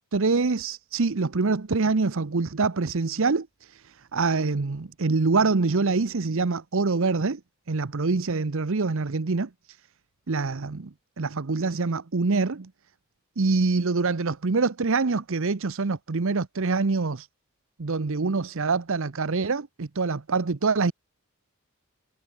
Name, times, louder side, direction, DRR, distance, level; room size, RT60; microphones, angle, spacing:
voice 1, 0.0-7.4 7.7-9.5 10.3-10.9 11.2-12.7 13.4-17.3 17.8-20.9, right 4 dB, 65° right, 0.8 m, -25 dB
head